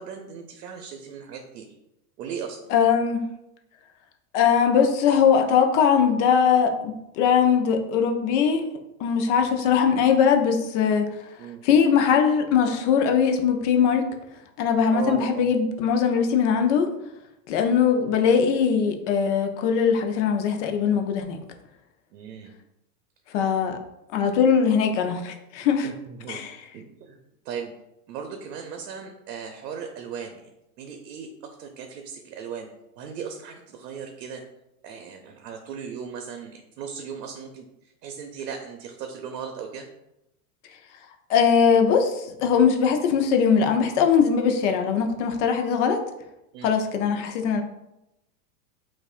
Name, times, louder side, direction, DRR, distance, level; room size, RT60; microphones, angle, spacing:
voice 1, 0.0-1.7 2.2-2.7 11.4-11.6 14.9-15.5 22.1-22.5 25.8-26.4 26.7-27.2 27.4-27.7 28.1-30.5 30.8-32.7 33.0-34.4 34.8-39.9 46.5-46.8, right 6 dB, 85° right, 4 dB, 0.7 m, -37 dB
voice 2, 2.7-3.3 4.3-8.7 9.0-11.1 11.6-14.1 14.6-16.9 17.5-21.4 23.3-23.8 24.1-25.9 26.3-26.5 41.3-46.0 46.6-47.6, left 7 dB, 50° left, 5 dB, 0.6 m, -21 dB
5.8 x 2.5 x 2.4 m, 0.89 s
supercardioid pair, 145°, 48 cm